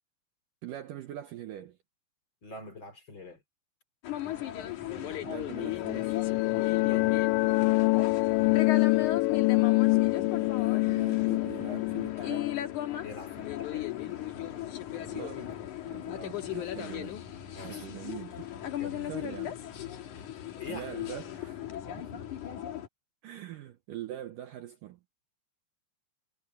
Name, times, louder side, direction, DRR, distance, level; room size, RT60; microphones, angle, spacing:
voice 1, 0.6-1.8 4.9-6.2 9.9-12.5 15.0-15.6 15.9-17.2 17.6-18.5 19.1-19.5 20.7-21.6 22.0-22.3 23.2-25.0, right 12 dB, 90° right, 1.8 m, -43 dB
voice 2, 2.4-3.4 6.8-7.2 13.0-13.9 16.2-16.4 17.5-17.9 18.7-19.1 20.1-20.3 20.6-20.9, left 3 dB, 30° left, 3.2 m, -44 dB
sound 1, 4.0-22.9, left 12 dB, 55° left, 2.6 m, -37 dB
sound 2, 5.5-14.1, left 23 dB, 85° left, 2.9 m, -26 dB
omnidirectional pair, 5.2 m